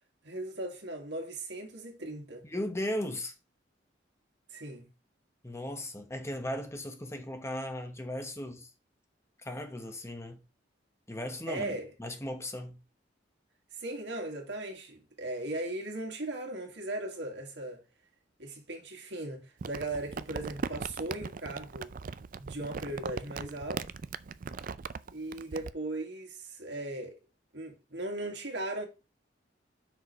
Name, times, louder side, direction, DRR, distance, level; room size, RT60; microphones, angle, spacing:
voice 1, 0.2-2.5 4.5-4.9 11.5-11.9 13.8-17.8 18.4-21.9 22.4-23.9 25.1-27.2 27.5-28.9, right 2 dB, 65° right, 2.1 m, -38 dB
voice 2, 2.4-3.3 5.4-8.7 9.4-10.4 11.1-12.8, left 1 dB, 15° left, 1.0 m, -37 dB
Crumpling crinkling, 19.6-25.7, right 5 dB, 45° right, 0.4 m, -39 dB
6.2 x 5.0 x 5.4 m
head